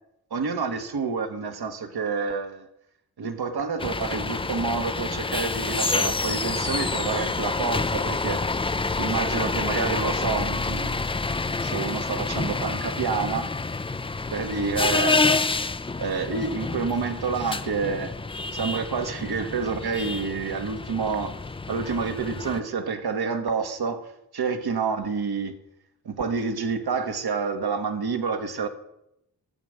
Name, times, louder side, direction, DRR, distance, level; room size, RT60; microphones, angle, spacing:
voice 1, 0.3-2.7 3.2-8.5 9.0-11.0 11.6-13.5 14.3-15.4 16.0-18.1 18.5-21.4 21.7-24.1 24.3-25.6 26.0-28.7, right 5 dB, 70° right, 1.4 m, -28 dB
sound 1, 3.8-22.6, left 3 dB, 15° left, 0.4 m, -28 dB
13.0 x 7.9 x 6.4 m
cardioid pair, 50°, 40 cm